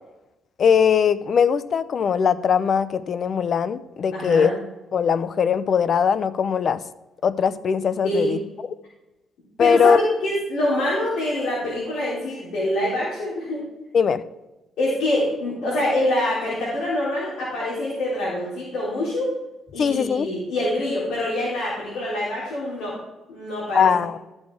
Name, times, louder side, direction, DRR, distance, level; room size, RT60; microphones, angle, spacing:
voice 1, 0.6-4.5 4.9-6.8 7.2-8.4 9.6-10.0 13.9-14.2 19.8-20.3 23.7-24.2, left 7 dB, 55° left, 15 dB, 0.6 m, -20 dB
voice 2, 4.1-4.5 8.0-8.3 9.6-13.6 14.8-19.3 19.7-22.9 23.3-23.9, left 1 dB, 85° left, -8 dB, 3.9 m, -25 dB
13.5 x 6.4 x 4.8 m, 0.99 s
cardioid pair, 90°, 0 cm